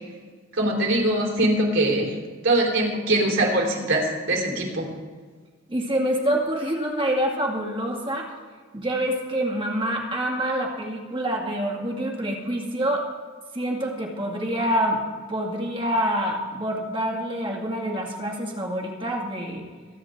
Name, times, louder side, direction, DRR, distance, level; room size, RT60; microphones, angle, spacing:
voice 1, 0.5-2.1 2.4-4.8, right 1 dB, 70° right, -1 dB, 3.9 m, -22 dB
voice 2, 5.7-8.3 8.7-13.0 13.5-15.0 15.3-19.7, right 1 dB, 25° right, 0 dB, 2.2 m, -26 dB
24.0 x 9.6 x 3.7 m, 1.5 s
head